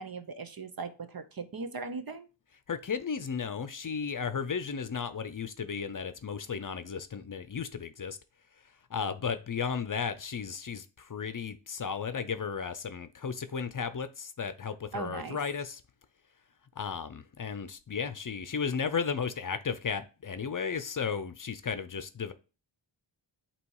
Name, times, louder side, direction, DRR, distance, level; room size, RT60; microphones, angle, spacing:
voice 1, 0.0-2.3 14.9-15.4, right 4 dB, 50° right, 0.9 m, -39 dB
voice 2, 2.7-8.2 8.9-15.8 16.8-22.3, left 6 dB, 45° left, 0.6 m, -34 dB
8.2 x 3.0 x 4.7 m
wide cardioid pair, 125°, 46 cm